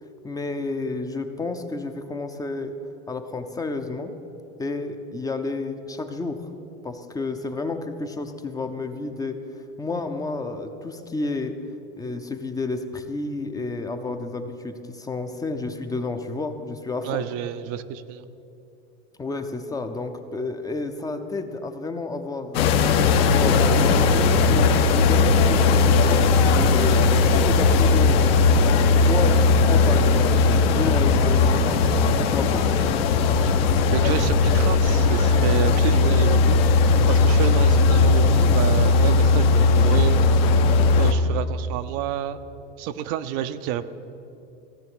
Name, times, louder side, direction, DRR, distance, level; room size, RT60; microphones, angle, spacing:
voice 1, 0.2-2.7 3.1-4.1 4.6-6.5 6.8-11.6 12.0-17.2 19.2-22.8 23.1-28.4 28.9-32.8, left 3 dB, 10° left, 7 dB, 0.6 m, -31 dB
voice 2, 17.0-18.3 33.4-33.6 33.9-36.6 37.1-40.2 40.9-42.4 42.8-43.8, right 10 dB, 50° right, 10 dB, 0.6 m, -29 dB
sound 1, 22.5-41.1, left 4 dB, 65° left, 1.3 m, -18 dB
15.5 x 7.0 x 9.5 m, 2.7 s
supercardioid pair, 130°, 31 cm